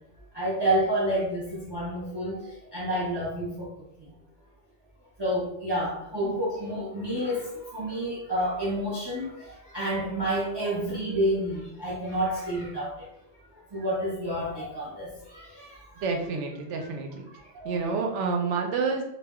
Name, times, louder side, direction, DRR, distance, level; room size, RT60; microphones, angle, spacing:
voice 1, 0.3-4.2 5.2-13.1 13.7-16.1 16.8-16.9 17.3-17.9, right 1 dB, 35° right, -5 dB, 0.4 m, -30 dB
voice 2, 16.0-17.3 17.6-19.0, right 4 dB, 85° right, 3 dB, 0.9 m, -28 dB
2.3 x 2.1 x 3.5 m, 0.79 s
omnidirectional pair, 1.2 m